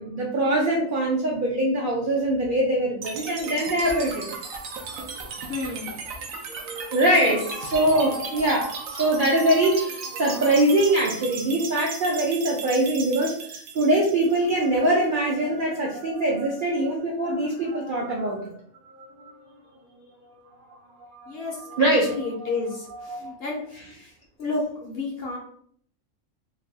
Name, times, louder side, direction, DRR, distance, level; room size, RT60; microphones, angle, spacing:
voice 1, 0.0-5.5 6.5-18.5 19.2-19.3 21.0-21.3 21.6-22.5 22.9-23.4, right 1 dB, 65° right, -2 dB, 0.5 m, -23 dB
sound 1, 3.0-15.0, right 4 dB, 85° right, 1.0 m, -36 dB
voice 2, 5.5-5.9 7.1-7.4 21.3-23.7 24.4-25.4, left 3 dB, 65° left, -1 dB, 0.7 m, -31 dB
3.2 x 2.2 x 2.6 m, 0.62 s
omnidirectional pair, 1.4 m